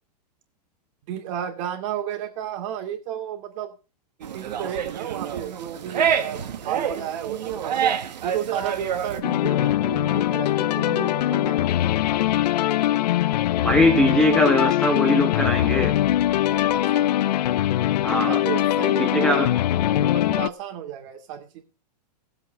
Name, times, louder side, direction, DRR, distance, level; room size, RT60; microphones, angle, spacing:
voice 1, 1.1-3.7 4.3-7.8 8.2-11.9 16.7-17.1 18.3-19.6 19.9-21.6, right 10 dB, 50° right, 5 dB, 2.4 m, -33 dB
sound 1, 4.2-9.2, right 8 dB, 85° right, 1.7 m, -27 dB
sound 2, 9.2-20.5, left 13 dB, 75° left, 0.6 m, -22 dB
voice 2, 13.6-15.9 18.0-18.4 19.0-19.5, left 1 dB, 5° left, 4 dB, 1.2 m, -21 dB
17.0 x 7.8 x 4.5 m, 0.33 s
hypercardioid pair, 145°, 21 cm